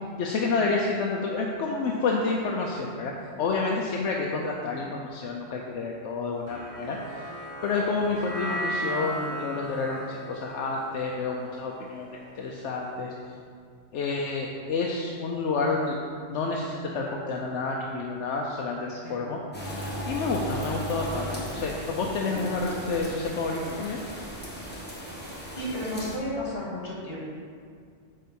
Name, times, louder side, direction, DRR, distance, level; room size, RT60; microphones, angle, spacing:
voice 1, 0.2-3.1 3.4-7.0 7.6-12.1 12.4-13.1 13.9-16.0 16.3-19.4 20.0-24.0, left 3 dB, 80° left, -1 dB, 1.0 m, -29 dB
sound 1, 6.5-12.8, equal, 45° right, 1.4 m, -36 dB
voice 2, 18.9-19.3 25.6-27.2, left 1 dB, 55° left, -5 dB, 2.2 m, -33 dB
sound 2, 19.5-26.2, equal, 10° left, 1.1 m, -36 dB
8.6 x 3.7 x 5.3 m, 2.2 s
omnidirectional pair, 1.2 m